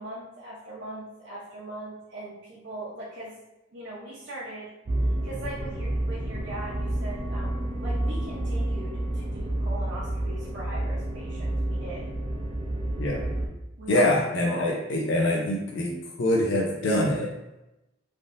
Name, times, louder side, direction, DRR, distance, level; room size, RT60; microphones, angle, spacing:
voice 1, 0.0-3.3 3.7-4.7 5.2-12.0 13.8-14.1 14.4-14.7, right 1 dB, 65° right, -8 dB, 0.7 m, -40 dB
sound 1, 4.9-13.5, right 1 dB, 30° right, 0.4 m, -29 dB
voice 2, 13.9-17.3, left 1 dB, 70° left, -2 dB, 0.5 m, -24 dB
3.4 x 2.6 x 2.5 m, 0.95 s
head